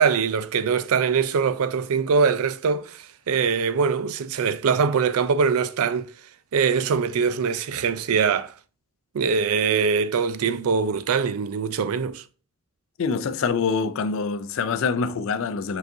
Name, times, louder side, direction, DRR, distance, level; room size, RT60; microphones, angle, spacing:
voice 1, 0.0-6.1 6.5-8.5 9.1-12.2, right 6 dB, 80° right, 0.4 m, -22 dB
voice 2, 13.0-15.8, left 5 dB, 65° left, 0.4 m, -25 dB
5.1 x 3.9 x 2.6 m
head